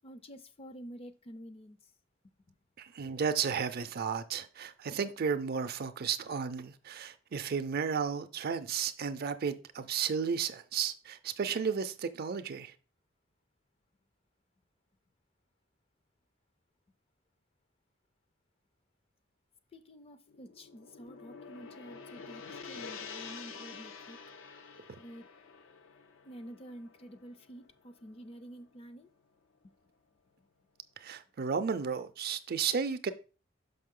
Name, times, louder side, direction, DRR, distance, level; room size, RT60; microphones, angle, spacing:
voice 1, 0.0-1.8 19.7-24.2 25.0-25.3 26.2-29.1 29.6-29.7, equal, 30° left, 0.5 m, -49 dB
voice 2, 2.8-12.7 31.0-33.1, right 6 dB, 50° right, 0.5 m, -33 dB
Gong, 20.3-28.6, left 5 dB, 75° left, 0.6 m, -48 dB
6.0 x 5.5 x 3.7 m
head